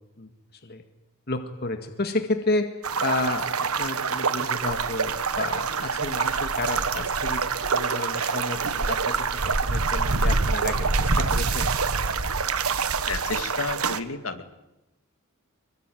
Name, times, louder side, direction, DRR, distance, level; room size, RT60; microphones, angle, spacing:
voice 1, 1.3-2.7 3.0-7.4 7.7-9.3 9.6-11.7, left 2 dB, 50° left, 7 dB, 1.9 m, -31 dB
sound 1, 2.8-14.0, right 4 dB, 90° right, 1.5 m, -26 dB
voice 2, 13.1-14.4, left 4 dB, 75° left, 8 dB, 2.4 m, -31 dB
25.5 x 23.0 x 9.3 m, 0.94 s
head